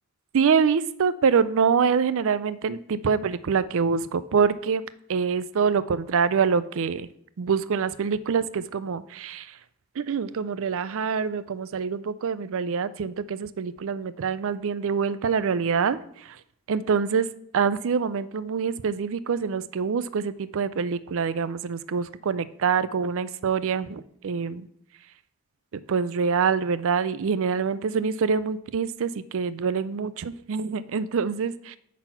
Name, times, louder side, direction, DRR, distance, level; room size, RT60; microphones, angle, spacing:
voice 1, 0.3-7.1 7.4-9.5 10.0-16.4 16.7-17.3 17.5-24.7 25.7-31.8, right 6 dB, 65° right, 16 dB, 0.4 m, -25 dB
8.8 x 4.2 x 5.6 m, 0.70 s
head